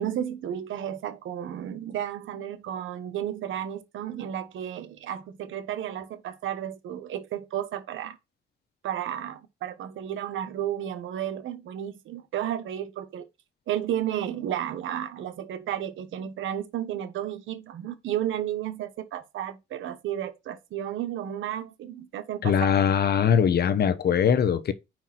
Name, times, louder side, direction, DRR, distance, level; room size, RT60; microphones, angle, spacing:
voice 1, 0.0-8.2 8.8-13.2 13.7-22.7, right 10 dB, 80° right, 1.2 m, -32 dB
voice 2, 22.4-24.7, left 8 dB, 55° left, 0.9 m, -21 dB
5.2 x 4.6 x 6.0 m
cardioid pair, 90°, 20 cm